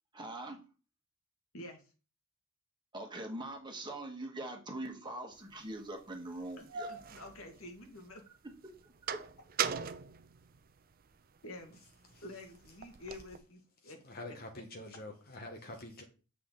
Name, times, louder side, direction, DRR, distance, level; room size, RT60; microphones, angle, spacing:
voice 1, 0.1-0.6 2.9-6.9 8.8-9.2, right 1 dB, 20° right, 1.5 m, -42 dB
sound 1, 5.5-5.6 6.3-8.2 8.5-11.1 11.6-13.4, right 7 dB, 45° right, 0.6 m, -40 dB
voice 2, 6.9-8.2 11.4-11.8 12.2-14.0 14.3-14.4, left 2 dB, 70° left, 1.9 m, -48 dB
voice 3, 13.8-16.0, left 1 dB, 45° left, 1.1 m, -46 dB
8.2 x 5.9 x 3.9 m
head